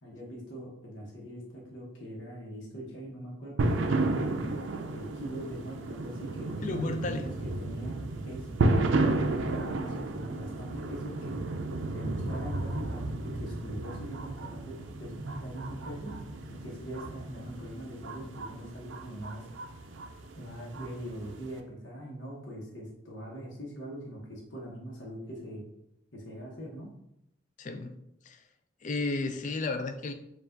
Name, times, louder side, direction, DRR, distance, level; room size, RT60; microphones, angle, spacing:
voice 1, 0.0-4.2 4.9-8.6 8.9-11.4 11.9-16.2 16.5-19.5 20.3-25.6 26.1-26.9, equal, 70° left, -3 dB, 1.0 m, -42 dB
sound 1, 3.6-21.6, right 2 dB, 75° right, 0.4 m, -33 dB
voice 2, 6.6-7.3 27.6-27.9 28.3-28.4 28.8-30.1, left 2 dB, 40° left, 8 dB, 0.4 m, -32 dB
4.6 x 2.4 x 3.8 m, 0.81 s
head